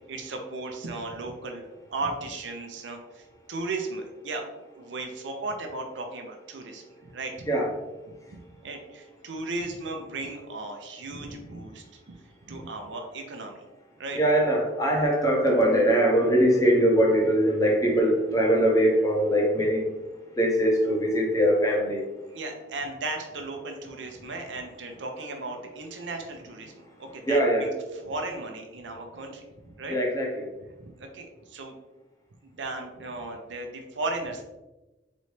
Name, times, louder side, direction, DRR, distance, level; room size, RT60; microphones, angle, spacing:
voice 1, 0.1-1.6 1.9-4.4 4.7-7.5 8.3-12.2 12.4-13.6 14.0-14.2 22.3-27.7 28.0-30.0 30.8-31.7 32.4-34.4, right 2 dB, 80° right, 3 dB, 0.6 m, -36 dB
voice 2, 7.5-8.7 14.1-19.9 20.3-22.1 26.6-26.9 27.3-27.7 29.9-30.5, equal, 20° left, -1 dB, 0.8 m, -22 dB
4.1 x 3.1 x 3.2 m, 1.1 s
head